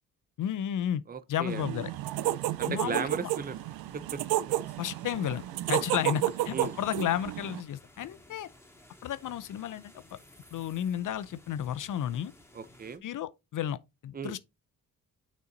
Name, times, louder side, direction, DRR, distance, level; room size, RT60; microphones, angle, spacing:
voice 1, 0.4-1.0 1.3-1.9 2.7-3.3 4.8-8.5 9.0-10.2 10.5-12.3 13.0-13.8 14.0-14.4, left 10 dB, 60° left, 0.6 m, -32 dB
voice 2, 1.1-1.6 2.2-3.6 4.1-4.2 4.5-4.6 6.5-6.8 12.5-13.0 14.1-14.3, right 6 dB, 25° right, 0.7 m, -36 dB
sound 1, 1.5-7.6, right 15 dB, 90° right, 0.5 m, -32 dB
sound 2, 1.9-13.0, left 1 dB, 5° left, 2.6 m, -57 dB
6.5 x 5.3 x 3.9 m
cardioid pair, 70°, 35 cm